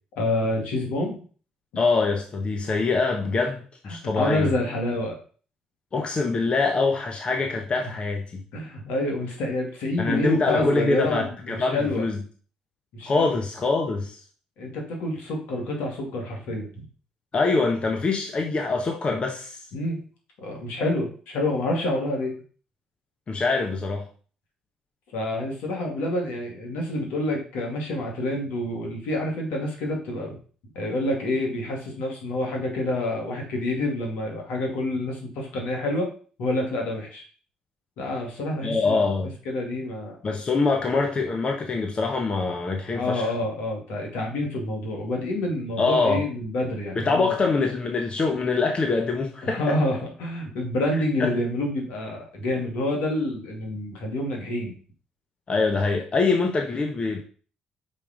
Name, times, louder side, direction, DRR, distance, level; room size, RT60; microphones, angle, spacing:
voice 1, 0.2-1.2 3.9-5.2 8.5-12.1 12.9-13.3 14.6-16.8 19.7-20.0 20.4-22.4 25.1-30.4 30.7-36.1 36.4-37.2 38.0-39.0 39.5-40.2 42.9-47.3 49.4-54.8, left 1 dB, 80° left, 1 dB, 2.5 m, -28 dB
voice 2, 1.8-4.5 5.9-8.4 10.0-12.2 13.0-14.2 17.3-19.6 23.3-24.0 38.6-39.3 40.2-43.3 45.8-46.2 46.9-49.7 51.2-51.3 55.5-57.2, left 3 dB, 45° left, 2 dB, 1.4 m, -24 dB
5.6 x 5.2 x 5.1 m, 0.41 s
supercardioid pair, 60°, 3 cm